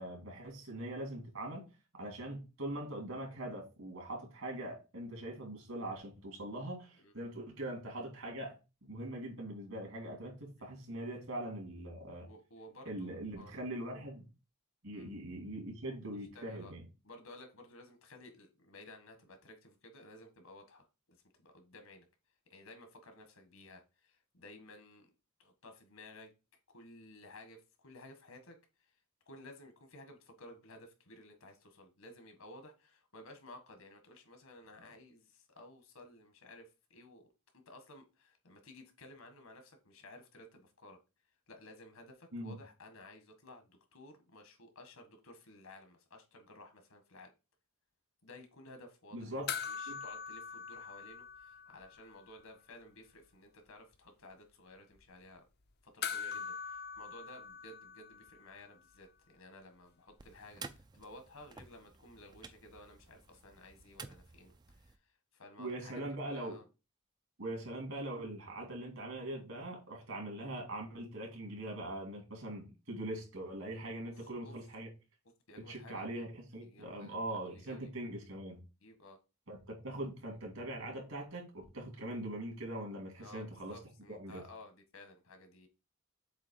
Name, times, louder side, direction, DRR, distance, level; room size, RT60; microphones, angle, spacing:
voice 1, 0.0-1.7 2.0-12.3 12.8-14.2 14.8-16.8 42.3-42.6 49.1-49.5 49.9-50.0 65.6-66.6 67.4-74.9 75.6-78.6 79.5-83.8 84.1-84.4, right 1 dB, 70° right, 3.0 m, -42 dB
voice 2, 12.2-13.1 13.4-13.5 14.9-15.1 16.4-16.7 17.0-21.2 21.4-22.1 22.5-25.1 25.4-26.3 26.7-28.6 29.3-37.2 37.7-41.0 41.5-47.3 48.2-49.3 49.7-55.4 55.8-60.6 60.9-65.0 65.3-66.7 74.1-74.5 75.5-76.1 76.6-77.9 78.8-79.2 83.2-85.7, left 1 dB, 75° left, 1.7 m, -55 dB
sound 1, 49.5-52.1 52.4-52.5 56.0-58.6 60.8-60.9, left 7 dB, 50° left, 0.6 m, -42 dB
sound 2, 60.2-65.0, right 4 dB, 20° right, 0.4 m, -52 dB
7.5 x 3.1 x 4.5 m
head